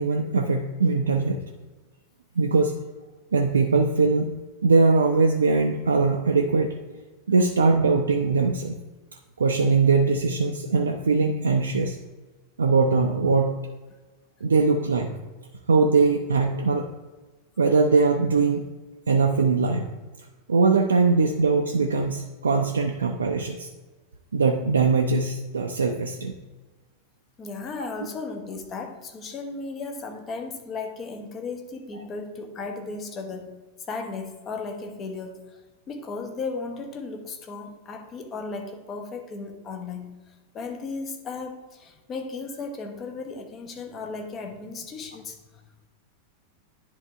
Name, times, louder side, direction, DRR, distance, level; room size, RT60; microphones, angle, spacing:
voice 1, 0.0-1.4 2.4-2.8 3.3-4.3 4.6-6.8 7.3-8.8 9.4-12.0 12.6-13.6 14.4-15.1 15.7-16.9 17.6-18.6 19.1-19.9 20.5-23.7 24.3-26.3 27.8-27.9, right 4 dB, 70° right, 3 dB, 0.5 m, -21 dB
voice 2, 27.4-33.5 33.9-35.6 35.9-45.4, left 4 dB, 30° left, 5 dB, 1.0 m, -35 dB
10.5 x 3.5 x 4.4 m, 1.2 s
figure-of-eight pair, 90°, 0 cm